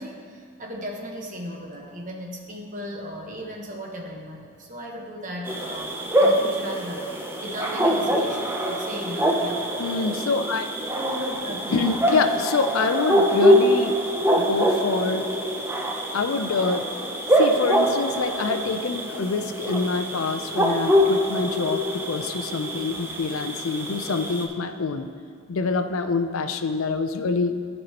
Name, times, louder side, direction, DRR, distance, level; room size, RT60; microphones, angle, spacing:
voice 1, 0.0-9.6 10.9-11.9, equal, 40° right, 0 dB, 1.1 m, -36 dB
sound 1, 5.5-24.5, equal, 10° right, 0.6 m, -24 dB
voice 2, 9.8-10.7 11.7-14.0 14.4-15.2 16.1-25.1 25.5-27.5, left 4 dB, 75° left, 8 dB, 0.5 m, -26 dB
14.5 x 5.4 x 2.9 m, 2.2 s
head